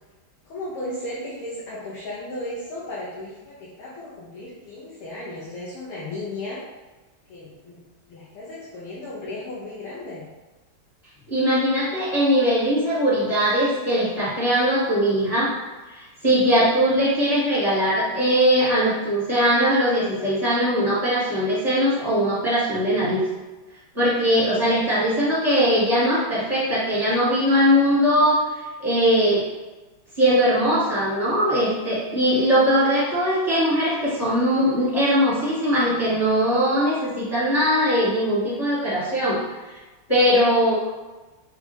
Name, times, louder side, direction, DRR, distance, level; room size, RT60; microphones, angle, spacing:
voice 1, 0.4-6.6 7.3-7.8 8.1-10.2 24.6-25.3 32.7-32.9, left 1 dB, 70° left, -8 dB, 1.6 m, -35 dB
voice 2, 11.3-15.5 15.9-23.2 23.9-28.4 28.8-29.5 30.2-39.4 40.1-40.7, equal, 15° left, -11 dB, 0.8 m, -20 dB
4.9 x 2.4 x 3.1 m, 1.2 s
omnidirectional pair, 2.4 m